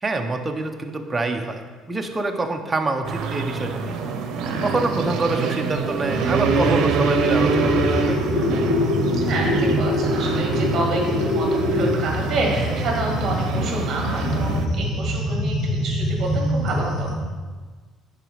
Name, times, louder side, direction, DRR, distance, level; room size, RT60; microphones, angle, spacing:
voice 1, 0.0-4.0 4.6-8.5, right 2 dB, 15° right, 4 dB, 0.6 m, -26 dB
sound 1, 3.1-14.7, right 5 dB, 65° right, 0.7 m, -26 dB
sound 2, 6.1-17.1, left 1 dB, 50° left, 1.8 m, -24 dB
voice 2, 9.2-17.1, right 2 dB, 40° right, -1 dB, 1.9 m, -28 dB
9.1 x 3.9 x 5.1 m, 1.4 s
cardioid pair, 155°, 0 cm